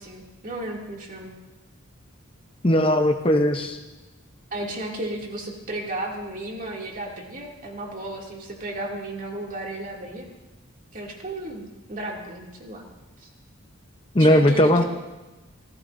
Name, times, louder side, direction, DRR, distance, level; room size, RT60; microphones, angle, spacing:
voice 1, 0.0-1.3 4.5-10.3 10.9-12.8 13.2-13.3 14.2-14.8, right 1 dB, 40° right, -1 dB, 2.5 m, -34 dB
voice 2, 2.6-3.8 14.1-14.8, equal, 25° left, 5 dB, 0.8 m, -18 dB
27.0 x 16.0 x 2.6 m, 1.1 s
head